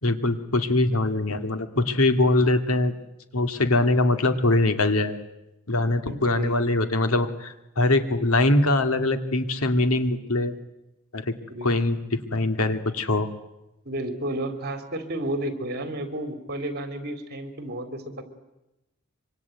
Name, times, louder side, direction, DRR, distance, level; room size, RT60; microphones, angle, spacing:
voice 1, 0.0-2.9 3.3-5.2 5.7-10.5 11.1-13.3, left 2 dB, 75° left, 9 dB, 2.2 m, -23 dB
voice 2, 6.1-6.6 11.5-11.7 13.8-18.2, right 1 dB, 45° right, 8 dB, 3.6 m, -32 dB
25.0 x 24.5 x 9.4 m, 0.95 s
head